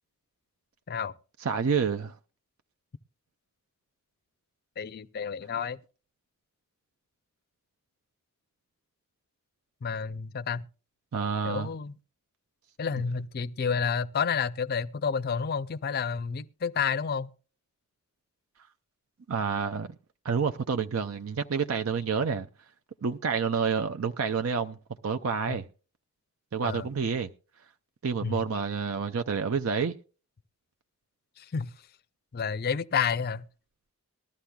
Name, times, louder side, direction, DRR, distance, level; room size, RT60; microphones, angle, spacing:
voice 1, 1.4-2.1 11.1-11.7 19.3-20.0 20.2-22.5 23.0-24.8 25.0-25.6 26.5-27.3 28.0-29.9, right 6 dB, 65° right, 0.5 m, -28 dB
voice 2, 4.8-5.8 9.8-10.6 11.4-12.0 12.8-17.3 25.5-25.6 26.6-26.9 28.2-28.4 31.4-31.7 32.3-33.5, left 6 dB, 45° left, 0.5 m, -30 dB
19.5 x 13.0 x 2.3 m
head